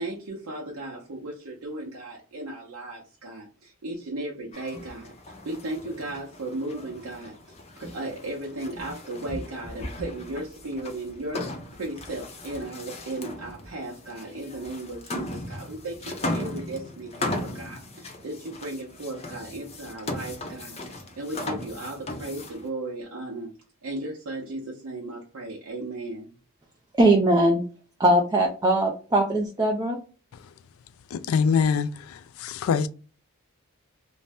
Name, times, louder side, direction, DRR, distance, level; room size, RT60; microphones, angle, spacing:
voice 1, 0.0-7.4 7.8-23.5 23.8-26.3, right 2 dB, 80° right, 0.7 m, -36 dB
sound 1, 4.5-22.7, left 1 dB, 30° left, 0.6 m, -37 dB
voice 2, 27.0-27.6 28.0-30.0, right 1 dB, 20° right, 0.4 m, -20 dB
voice 3, 31.1-31.9 32.4-32.9, left 6 dB, 70° left, 0.3 m, -23 dB
2.6 x 2.1 x 3.3 m
head